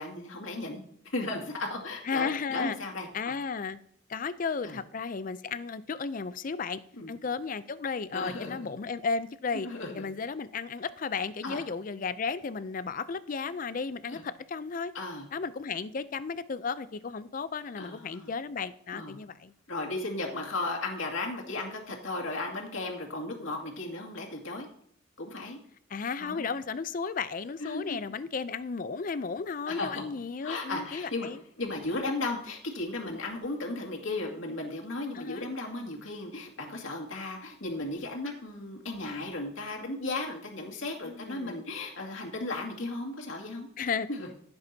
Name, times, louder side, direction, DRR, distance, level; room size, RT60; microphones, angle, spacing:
voice 1, 0.0-3.3 4.6-4.8 7.0-7.2 8.1-8.7 9.5-10.1 11.4-11.7 14.1-14.2 14.9-15.2 17.8-18.3 18.9-19.1 19.7-24.7 25.2-25.6 26.2-26.5 27.6-28.0 29.7-30.0 30.4-31.3 31.6-43.7 44.1-44.3, left 2 dB, 90° left, -1 dB, 2.2 m, -35 dB
voice 2, 2.1-2.8 3.1-3.8 4.1-6.8 7.1-9.7 9.9-14.9 15.3-19.5 25.9-31.4 35.1-35.5 41.0-41.6 43.8-44.1, left 5 dB, 45° left, 15 dB, 0.4 m, -34 dB
15.0 x 7.9 x 2.8 m, 0.69 s
head